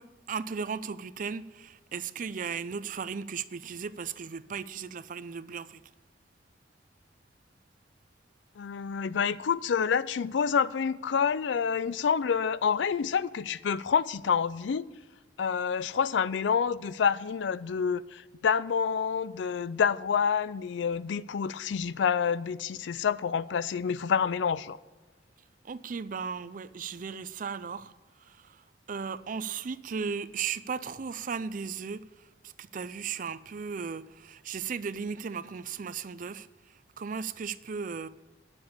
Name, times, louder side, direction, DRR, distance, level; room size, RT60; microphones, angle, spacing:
voice 1, 0.0-5.8 25.6-27.9 28.2-28.6 28.9-36.5 37.0-38.1, right 6 dB, 45° right, 0.4 m, -36 dB
voice 2, 8.6-14.9 15.4-24.8, left 6 dB, 80° left, 0.4 m, -28 dB
10.0 x 6.9 x 7.0 m
head